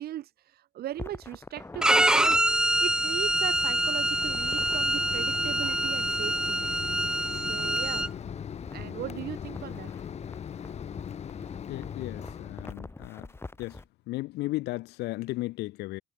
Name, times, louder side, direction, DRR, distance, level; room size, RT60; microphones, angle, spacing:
voice 1, 0.0-2.4 2.8-6.6 7.3-8.1 8.7-9.9, right 13 dB, 65° right, 4.4 m, -38 dB
sound 1, 0.9-2.4 4.1-4.8 7.5-13.9, left 2 dB, 15° left, 2.9 m, -45 dB
Mechanisms, 1.8-12.7, left 8 dB, 40° left, 1.1 m, -40 dB
Bowed string instrument, 1.8-8.1, right 1 dB, 5° right, 0.4 m, -25 dB
voice 2, 11.7-13.3 13.6-13.8 14.1-16.0, left 19 dB, 85° left, 0.8 m, -35 dB
cardioid pair, 110°, 17 cm